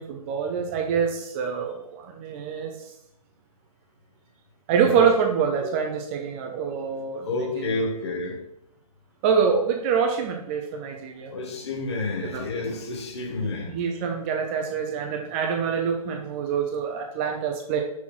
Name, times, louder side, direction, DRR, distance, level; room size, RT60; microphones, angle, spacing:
voice 1, 0.0-2.7 4.7-7.3 7.6-7.8 9.2-11.3 12.2-12.4 13.4-17.8, right 6 dB, 20° right, 0.7 m, -25 dB
voice 2, 7.2-8.4 11.3-13.7, left 2 dB, 45° left, 1.7 m, -30 dB
6.5 x 5.6 x 6.0 m
figure-of-eight pair, 135°, 20 cm